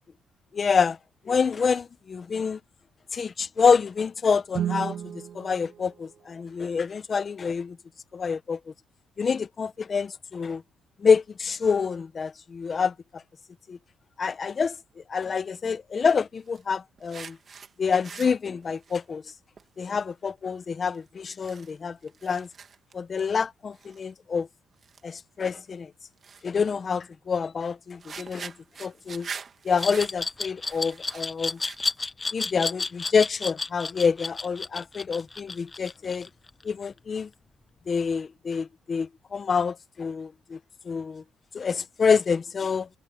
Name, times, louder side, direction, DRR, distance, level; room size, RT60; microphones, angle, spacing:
voice 1, 0.5-1.0 1.2-2.6 3.1-7.8 8.1-8.6 9.2-10.6 11.0-13.2 13.7-13.8 14.2-17.4 17.8-19.2 19.8-22.0 22.2-22.5 22.9-24.5 25.0-25.9 26.4-28.5 28.8-29.3 29.6-31.6 32.3-36.3 36.6-37.3 37.9-40.6 40.8-41.2 41.5-42.9, left 5 dB, 40° left, 1.4 m, -27 dB
Guitar, 4.5-7.1, right 8 dB, 65° right, 2.8 m, -34 dB
sound 1, 16.5-16.6 17.0-17.7 18.0-19.0 19.6-19.7 20.0-20.1 20.9-21.0 21.3-21.7 22.0-22.9 23.3-23.4 23.7-24.0 24.8-25.0 25.4-25.5 26.2-26.4 27.6-27.7 28.0-32.0, right 6 dB, 45° right, 2.5 m, -43 dB
Glass, 29.8-36.6, left 3 dB, 25° left, 1.3 m, -31 dB
cardioid pair, 90°, 0 cm